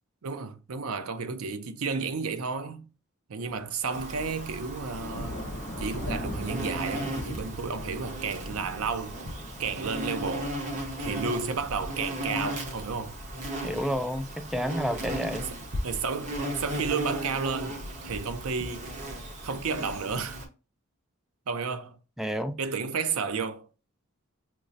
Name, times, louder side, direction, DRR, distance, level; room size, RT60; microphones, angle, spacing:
voice 1, 0.2-2.9 3.3-5.4 5.8-9.2 9.6-10.6 11.0-13.1 15.8-18.9 19.4-20.4 21.5-22.0 22.6-23.7, right 5 dB, 85° right, 0.5 m, -32 dB
Thunder / Rain, 3.4-11.7, equal, 55° left, 0.8 m, -40 dB
Insect, 3.9-20.5, right 1 dB, 35° right, 0.8 m, -36 dB
voice 2, 13.6-15.5 22.2-22.6, equal, ahead, 0.3 m, -30 dB
5.9 x 2.0 x 2.6 m
head